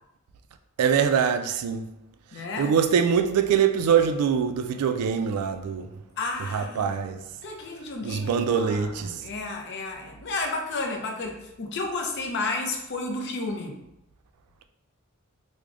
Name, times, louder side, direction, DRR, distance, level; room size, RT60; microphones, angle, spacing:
voice 1, 0.8-1.8 2.6-5.9 6.5-7.2 8.0-9.2, right 7 dB, 85° right, 0.3 m, -23 dB
voice 2, 2.3-2.8 6.2-7.1 7.4-13.8, left 3 dB, 50° left, 0.5 m, -32 dB
4.7 x 2.1 x 2.5 m
head